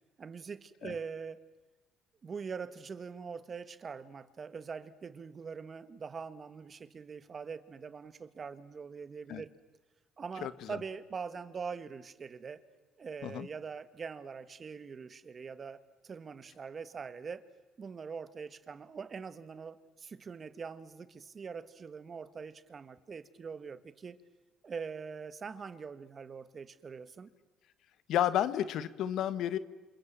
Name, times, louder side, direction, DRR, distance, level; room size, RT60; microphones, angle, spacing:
voice 1, 0.2-1.4 2.2-9.5 10.2-12.6 13.0-17.4 17.8-24.2 24.6-27.3, right 5 dB, 35° right, 13 dB, 1.7 m, -43 dB
voice 2, 10.4-10.8 13.2-13.5 28.1-29.6, left 11 dB, 70° left, 14 dB, 1.4 m, -31 dB
28.0 x 28.0 x 7.6 m, 1.2 s
cardioid pair, 95°, 0 cm